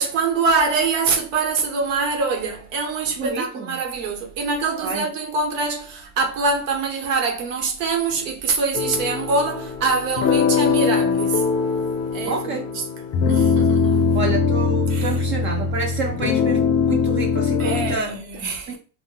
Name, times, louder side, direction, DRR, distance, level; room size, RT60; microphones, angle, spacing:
voice 1, 0.0-11.4 12.1-12.6 13.3-14.1 14.9-15.1 17.6-18.8, right 4 dB, 85° right, 0.9 m, -24 dB
voice 2, 3.2-3.7 4.8-5.1 12.3-12.7 14.1-18.2 18.7-18.8, right 3 dB, 35° right, 0.4 m, -28 dB
sound 1, 8.7-18.0, left 5 dB, 40° left, 0.5 m, -21 dB
2.1 x 2.1 x 3.8 m
supercardioid pair, 120°, 38 cm